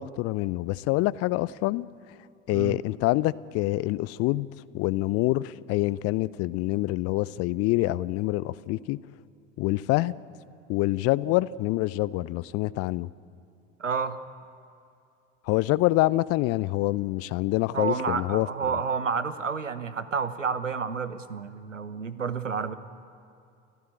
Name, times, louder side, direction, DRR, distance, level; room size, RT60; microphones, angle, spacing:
voice 1, 0.0-1.9 2.5-4.5 4.7-9.0 9.6-10.1 10.7-13.1 15.5-18.5, left 18 dB, 40° left, 21 dB, 0.6 m, -26 dB
voice 2, 13.8-14.2 17.7-22.7, right 6 dB, 85° right, 14 dB, 1.0 m, -30 dB
29.0 x 15.5 x 8.7 m, 2.5 s
figure-of-eight pair, 65°, 37 cm